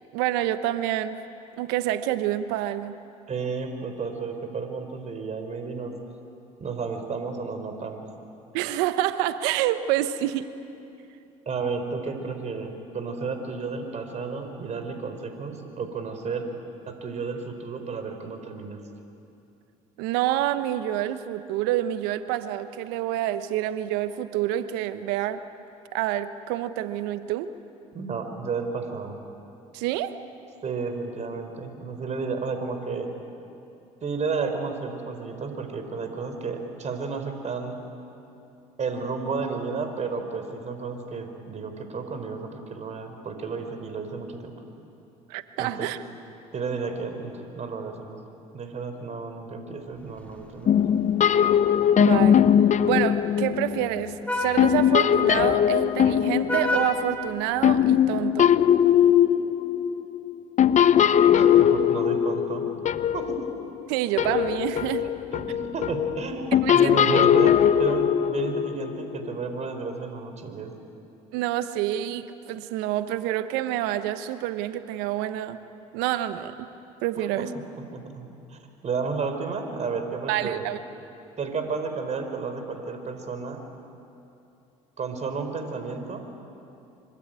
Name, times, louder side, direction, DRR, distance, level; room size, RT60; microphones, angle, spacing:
voice 1, 0.1-1.2 1.6-2.9 8.5-10.5 20.0-25.4 25.9-27.5 29.7-30.2 45.3-46.0 52.0-52.5 52.9-58.5 63.9-65.1 66.6-66.9 71.3-75.6 75.9-76.5 77.0-77.5 80.3-80.8, right 13 dB, 75° right, 11 dB, 1.2 m, -27 dB
voice 2, 3.3-5.9 6.6-8.0 11.5-16.5 16.9-18.8 27.9-29.2 30.6-33.1 34.0-37.8 38.8-44.6 45.6-45.9 46.5-48.2 48.5-50.8 61.3-62.6 63.1-63.4 65.0-70.7 77.2-77.5 77.9-80.7 81.4-83.6 85.0-86.2, right 4 dB, 45° right, 6 dB, 4.4 m, -32 dB
Vehicle horn car horn honking, 50.0-58.1, left 1 dB, 10° left, 5.4 m, -35 dB
sound 1, 50.7-54.1 54.6-63.9 64.2-69.3, left 9 dB, 45° left, 1.0 m, -21 dB
25.0 x 25.0 x 9.1 m, 2.7 s
hypercardioid pair, 65°, 17 cm